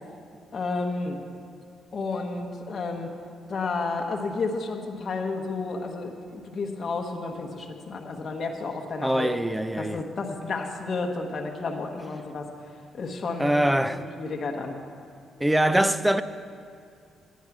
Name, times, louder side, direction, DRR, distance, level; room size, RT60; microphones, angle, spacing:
voice 1, 0.5-1.2 1.9-3.1 3.5-9.3 9.8-12.5 12.9-13.7 14.0-14.8, left 3 dB, 45° left, 1.1 m, -31 dB
voice 2, 9.0-10.0 13.4-14.0 15.4-16.2, right 1 dB, 5° right, 0.4 m, -23 dB
10.5 x 9.1 x 6.0 m
cardioid pair, 90°, 0 cm